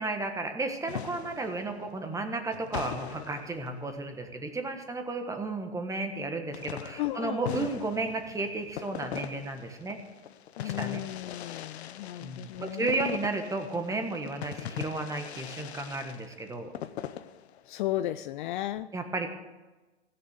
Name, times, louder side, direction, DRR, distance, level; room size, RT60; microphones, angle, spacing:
voice 1, 0.0-10.0 10.6-11.0 12.2-16.7 18.9-19.3, right 3 dB, 10° right, 5 dB, 1.4 m, -33 dB
sound 1, 0.9-4.4 6.5-17.8, left 10 dB, 70° left, 0.8 m, -41 dB
voice 2, 7.0-7.7 10.6-13.1 17.7-18.9, left 14 dB, 45° left, 12 dB, 0.5 m, -34 dB
16.0 x 6.8 x 8.0 m, 1.2 s
hypercardioid pair, 120°, 34 cm